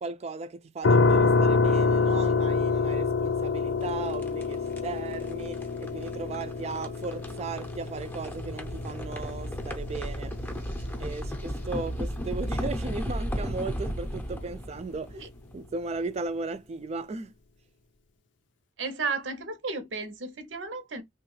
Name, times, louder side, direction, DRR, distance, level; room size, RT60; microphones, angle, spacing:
voice 1, 0.0-10.4 11.0-15.3 15.5-17.3, right 3 dB, 35° right, 0.3 m, -36 dB
sound 1, 0.8-13.7, left 4 dB, 80° left, 0.5 m, -28 dB
sound 2, 3.8-15.9, equal, 10° left, 0.6 m, -36 dB
voice 2, 18.8-21.0, right 4 dB, 85° right, 0.7 m, -33 dB
3.1 x 2.3 x 3.1 m
head